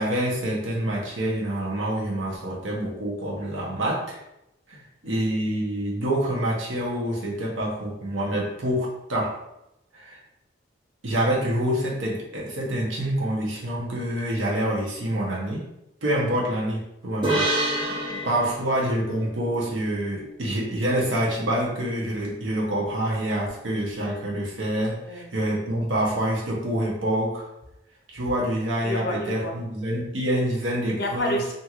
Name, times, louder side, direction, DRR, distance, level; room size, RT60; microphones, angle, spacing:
voice 1, 0.0-4.2 5.0-9.4 9.9-10.2 11.0-15.7 16.0-17.8 18.2-27.4 28.1-31.4, right 1 dB, 80° right, -3 dB, 0.8 m, -26 dB
voice 2, 4.7-5.2 17.8-18.3 25.0-25.3 28.8-29.6 30.9-31.5, left 1 dB, 50° left, 2 dB, 0.5 m, -31 dB
sound 1, 17.2-20.7, right 1 dB, 25° right, 0.6 m, -29 dB
2.9 x 2.6 x 2.4 m, 0.87 s
head